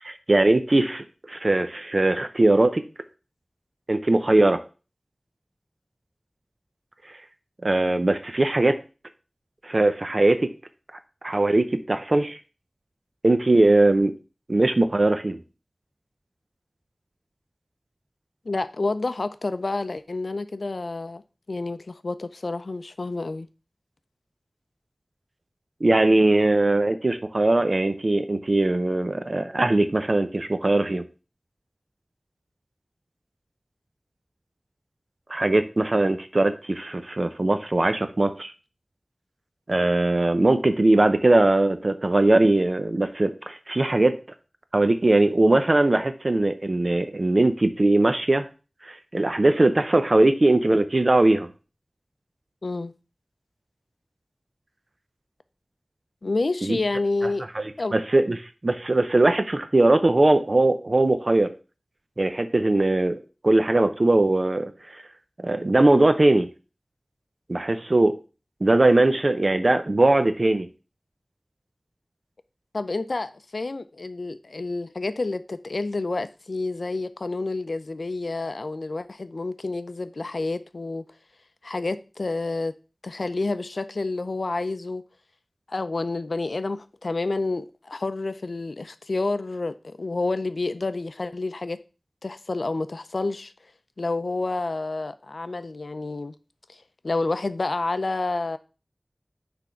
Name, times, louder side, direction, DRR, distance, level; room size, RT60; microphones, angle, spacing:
voice 1, 0.0-2.8 3.9-4.6 7.6-8.8 9.6-10.5 11.2-12.4 13.2-14.1 14.5-15.4 25.8-31.0 35.3-38.5 39.7-44.2 44.7-48.4 48.8-51.5 56.6-56.8 57.5-57.6 57.9-61.5 62.2-63.2 63.4-65.0 65.4-66.5 67.5-68.1 68.6-70.7, right 2 dB, 55° right, 0.6 m, -20 dB
voice 2, 18.5-21.2 21.5-23.5 52.6-52.9 56.2-57.5 57.8-57.9 72.7-81.1 81.6-82.7 83.0-85.0 85.7-91.8 92.2-93.5 94.0-96.3 96.7-98.6, left 3 dB, 80° left, 0.4 m, -29 dB
6.2 x 3.4 x 5.6 m
wide cardioid pair, 50°, 0 cm